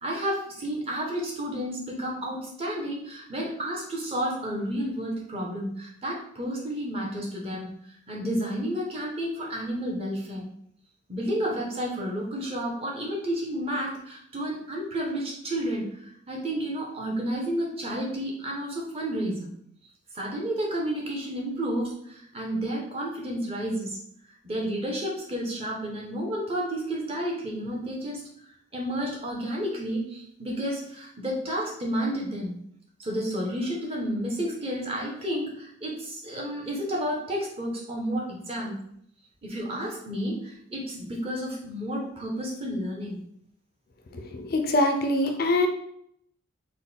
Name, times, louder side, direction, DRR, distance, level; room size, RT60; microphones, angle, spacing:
voice 1, 0.0-10.5 11.1-19.5 20.1-24.0 24.4-28.2 28.7-32.6 33.0-38.8 39.4-43.2 44.1-44.2, equal, 30° right, -2 dB, 0.9 m, -31 dB
voice 2, 44.1-45.7, left 2 dB, 45° left, 5 dB, 0.4 m, -24 dB
3.8 x 2.2 x 4.1 m, 0.68 s
head